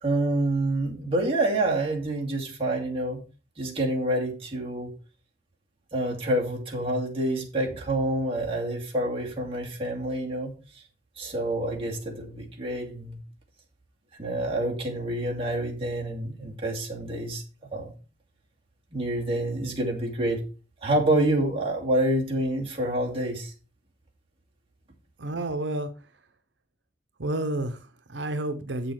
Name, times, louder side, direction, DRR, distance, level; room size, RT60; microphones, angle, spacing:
voice 1, 0.0-3.2 3.6-4.9 5.9-10.8 11.2-13.2 14.2-17.4 17.7-17.9 18.9-20.4 20.8-23.5, right 1 dB, 30° right, -2 dB, 2.5 m, -27 dB
voice 2, 25.2-25.9 27.2-28.9, right 1 dB, 90° right, 8 dB, 0.9 m, -30 dB
8.0 x 6.7 x 4.6 m, 0.35 s
head